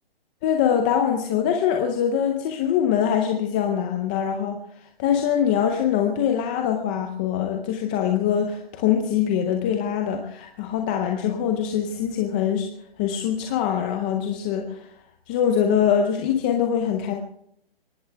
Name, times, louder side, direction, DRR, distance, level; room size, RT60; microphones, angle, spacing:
voice 1, 0.4-4.6 5.0-12.7 13.0-14.9 15.3-17.1, left 8 dB, 10° left, 3 dB, 0.6 m, -23 dB
23.0 x 18.5 x 3.4 m, 0.71 s
hypercardioid pair, 160°, 30 cm